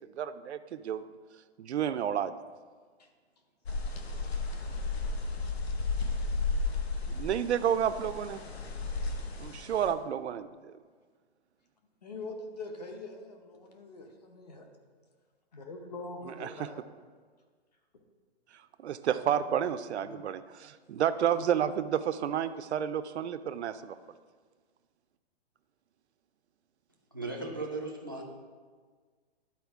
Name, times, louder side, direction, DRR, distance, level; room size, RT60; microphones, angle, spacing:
voice 1, 0.2-1.0 1.6-2.4 7.1-8.4 9.4-10.7 16.3-16.7 18.8-24.0, right 9 dB, 80° right, 11 dB, 0.5 m, -31 dB
sound 1, 3.7-9.9, left 3 dB, 65° left, 0.9 m, -33 dB
voice 2, 12.0-14.7 15.5-16.8 19.3-19.4 19.9-20.2, left 2 dB, 40° left, 4 dB, 0.8 m, -44 dB
voice 3, 27.1-28.2, right 2 dB, 20° right, 0 dB, 0.4 m, -36 dB
11.5 x 4.3 x 3.5 m, 1.6 s
hypercardioid pair, 180°, 33 cm